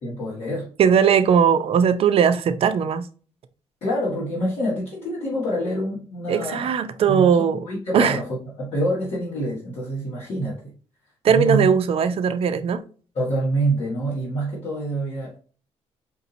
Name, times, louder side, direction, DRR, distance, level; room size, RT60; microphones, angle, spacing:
voice 1, 0.0-0.7 3.8-6.7 7.1-8.3 8.6-10.6 11.3-11.7 13.1-15.4, right 1 dB, 60° left, 1.8 m, -26 dB
voice 2, 0.8-3.1 6.3-7.6 7.9-8.2 11.2-12.8, right 7 dB, 50° right, 0.5 m, -19 dB
5.1 x 2.7 x 2.7 m
cardioid pair, 110°, 12 cm